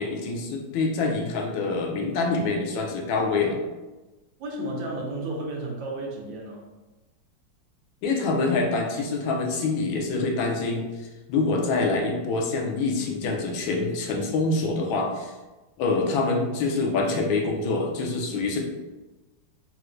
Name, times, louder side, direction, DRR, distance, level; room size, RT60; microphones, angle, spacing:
voice 1, 0.0-3.6 8.0-15.3 15.8-18.6, left 3 dB, 80° left, 1 dB, 1.3 m, -26 dB
voice 2, 4.4-6.6, right 1 dB, 80° right, -1 dB, 1.3 m, -32 dB
4.3 x 2.1 x 2.4 m, 1.1 s
omnidirectional pair, 2.1 m